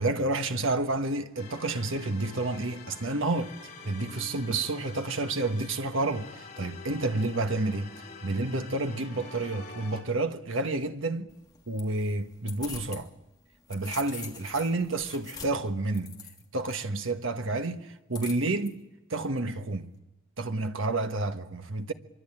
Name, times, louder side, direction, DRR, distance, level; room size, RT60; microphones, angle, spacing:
voice 1, 0.0-3.5 3.8-11.3 11.7-13.1 13.7-16.2 16.5-18.8 19.1-19.9 20.4-21.9, right 2 dB, 70° right, 1.4 m, -30 dB
sound 1, 1.4-10.0, left 4 dB, 35° left, 5.2 m, -46 dB
sound 2, 11.3-13.0 13.4-16.7 18.1-18.7, left 5 dB, 20° left, 2.9 m, -44 dB
25.5 x 24.0 x 8.9 m
head